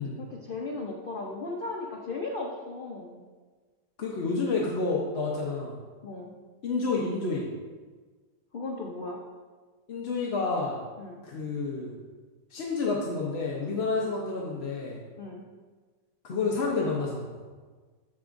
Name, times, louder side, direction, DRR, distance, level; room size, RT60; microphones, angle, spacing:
voice 1, 0.0-3.2 6.0-6.3 8.5-9.2 11.0-11.2 13.9-14.1 15.2-15.4, left 3 dB, 80° left, -1 dB, 0.4 m, -36 dB
voice 2, 4.0-5.8 6.6-7.5 9.9-10.8 11.2-11.9 12.5-15.0 16.2-17.3, left 3 dB, 50° left, -3 dB, 0.8 m, -29 dB
13.0 x 4.8 x 2.6 m, 1.4 s
omnidirectional pair, 2.0 m